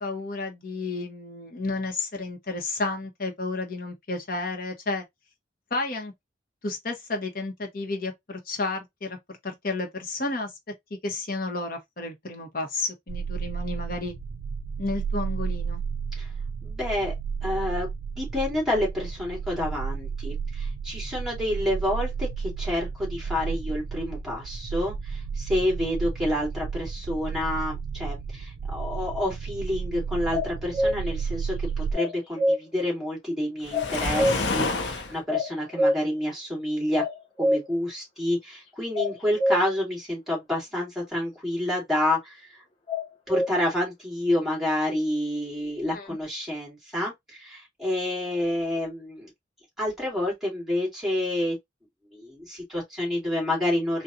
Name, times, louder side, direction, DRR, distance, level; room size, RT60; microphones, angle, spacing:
voice 1, 0.0-5.0 5.7-6.1 6.6-10.5 10.9-14.1 14.8-15.8 45.9-46.2, left 3 dB, 50° left, 1.1 m, -32 dB
sound 1, 13.1-31.9, right 6 dB, 70° right, 0.4 m, -32 dB
voice 2, 16.6-17.1 17.4-17.9 18.2-37.0 37.4-42.6 43.3-49.3 49.8-51.6 52.1-54.0, left 1 dB, ahead, 2.3 m, -29 dB
sound 2, 30.3-31.0 31.9-32.6 33.7-34.5 35.3-36.0 37.0-37.7 39.0-39.6 42.9-43.5, left 1 dB, 30° left, 1.0 m, -25 dB
Waves surf, 33.7-35.2, left 3 dB, 80° left, 0.8 m, -28 dB
3.8 x 2.4 x 2.8 m
head